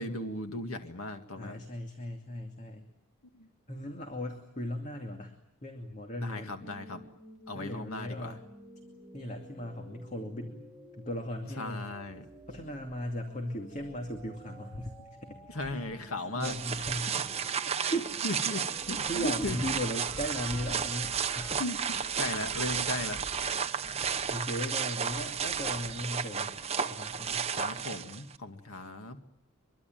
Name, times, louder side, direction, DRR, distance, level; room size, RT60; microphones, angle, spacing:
voice 1, 0.0-1.6 3.3-3.5 6.2-7.0 7.5-8.4 11.6-12.3 15.5-16.6 18.2-19.6 21.6-23.2 27.5-29.2, left 2 dB, 85° left, 6 dB, 2.1 m, -37 dB
voice 2, 1.4-2.9 3.7-6.6 7.5-8.4 9.1-10.6 11.0-11.9 12.5-14.9 15.2-15.8 16.3-17.3 17.8-18.4 18.9-21.6 22.2-22.3 23.5-26.6 26.8-27.5, equal, 35° left, 4 dB, 2.5 m, -38 dB
sound 1, 6.6-21.6, right 1 dB, ahead, 3.7 m, -52 dB
sound 2, 16.4-28.4, right 7 dB, 30° right, 1.1 m, -33 dB
24.0 x 23.5 x 9.2 m, 0.78 s
head